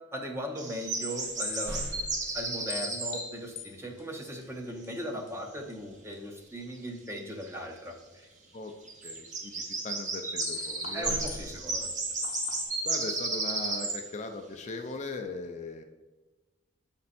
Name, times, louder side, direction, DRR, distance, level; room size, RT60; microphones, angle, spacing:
voice 1, 0.1-1.8 2.3-8.3 10.9-11.9, equal, 15° right, 3 dB, 0.7 m, -38 dB
sound 1, 0.6-3.3 7.1-7.2 7.4-7.5 8.9-14.0, right 3 dB, 35° right, 0.9 m, -33 dB
sound 2, 1.2-2.8 5.6-5.9 6.3-6.6 10.6-12.2, equal, 65° right, 1.3 m, -43 dB
sound 3, 1.4-1.9 2.3-2.4 2.7-3.7 4.0-4.1 4.4-4.5 4.8-4.9 5.3-5.4 5.7-5.8 6.1-6.2 10.4-11.0 11.3-11.9 12.2-12.6, left 8 dB, 65° left, 0.8 m, -39 dB
voice 2, 9.0-11.5 12.8-15.8, left 3 dB, 35° left, 5 dB, 0.5 m, -39 dB
7.4 x 4.4 x 4.2 m, 1.2 s
head